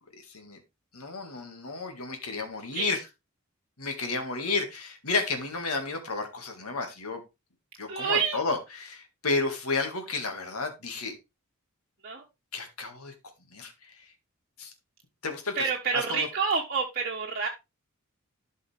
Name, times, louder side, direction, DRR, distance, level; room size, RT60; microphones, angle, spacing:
voice 1, 0.2-0.6 0.9-3.0 3.8-7.2 7.8-11.1 12.5-13.1 13.5-14.1 14.6-14.7 15.2-15.6 15.9-16.3, left 3 dB, 75° left, 2.1 m, -32 dB
voice 2, 7.9-8.4 12.0-12.2 15.5-17.5, right 5 dB, 40° right, 1.2 m, -28 dB
12.0 x 5.5 x 3.5 m
head